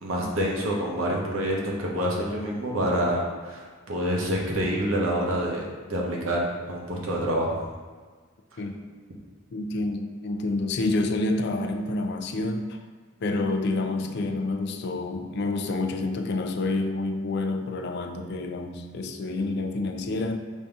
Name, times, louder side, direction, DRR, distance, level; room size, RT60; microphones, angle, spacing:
voice 1, 0.0-7.6, equal, 80° right, -2 dB, 0.9 m, -27 dB
voice 2, 9.5-12.8 13.2-20.4, left 2 dB, 55° left, 5 dB, 0.4 m, -28 dB
5.3 x 2.8 x 3.5 m, 1.5 s
head